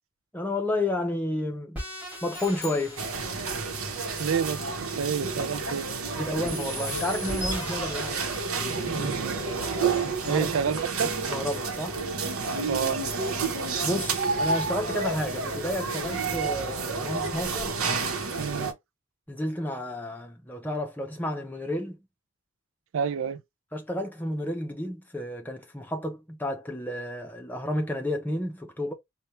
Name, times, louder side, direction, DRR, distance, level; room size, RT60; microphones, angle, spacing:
voice 1, 0.3-1.8 2.2-3.2 6.2-8.3 8.9-9.1 9.5-10.5 11.0-12.0 13.8-17.8 19.3-22.0 23.7-28.9, left 1 dB, 10° left, 0.6 m, -31 dB
sound 1, 1.7-6.0 6.4-9.1, left 1 dB, 5° right, 2.3 m, -40 dB
sound 2, 2.3-3.8, left 8 dB, 55° left, 0.7 m, -44 dB
sound 3, 3.0-18.7, right 4 dB, 85° right, 0.9 m, -30 dB
voice 2, 4.2-6.5 8.9-9.4 10.0-11.1 12.7-13.0 18.4-18.7 22.9-23.4, right 7 dB, 70° right, 0.4 m, -30 dB
4.2 x 2.3 x 3.1 m
head